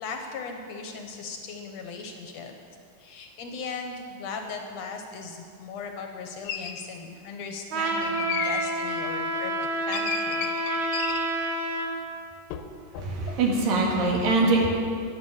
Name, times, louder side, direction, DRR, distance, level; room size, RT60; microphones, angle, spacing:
voice 1, 0.0-2.6 3.0-10.5, left 4 dB, 70° left, 4 dB, 1.7 m, -38 dB
sound 1, 6.5-6.8 8.2-8.8 9.9-11.3 12.5-12.7 12.9-13.4, left 8 dB, 90° left, 2.5 m, -32 dB
Trumpet, 7.7-11.9, right 2 dB, 65° right, 1.3 m, -29 dB
voice 2, 12.9-14.7, right 3 dB, 80° right, -2 dB, 3.6 m, -23 dB
11.0 x 9.7 x 7.2 m, 2.3 s
omnidirectional pair, 3.9 m